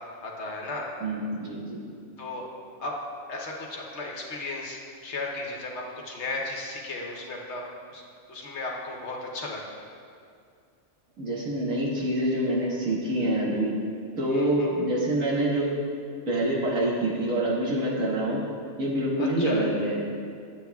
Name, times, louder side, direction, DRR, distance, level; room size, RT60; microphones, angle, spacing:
voice 1, 0.2-0.9 2.2-2.4 2.8-2.9 3.3-7.6 7.9-8.0 8.3-9.8 14.2-14.7 19.2-19.7, left 2 dB, 60° left, -1 dB, 1.2 m, -35 dB
voice 2, 1.0-1.8 11.2-13.7 14.2-15.7 16.3-18.4 18.8-20.0, right 1 dB, 75° right, -5 dB, 1.9 m, -26 dB
11.5 x 7.9 x 2.3 m, 2.3 s
omnidirectional pair, 1.4 m